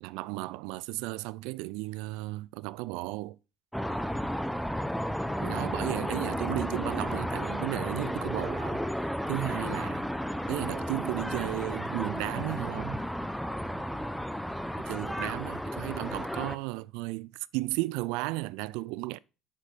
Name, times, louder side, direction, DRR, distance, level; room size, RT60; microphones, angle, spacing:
voice 1, 0.0-3.4 5.4-10.1 10.5-13.0 14.9-19.2, right 21 dB, 75° right, 0.4 m, -34 dB
sound 1, 3.7-16.6, equal, ahead, 0.8 m, -33 dB
7.5 x 6.1 x 5.0 m
supercardioid pair, 85°, 0 cm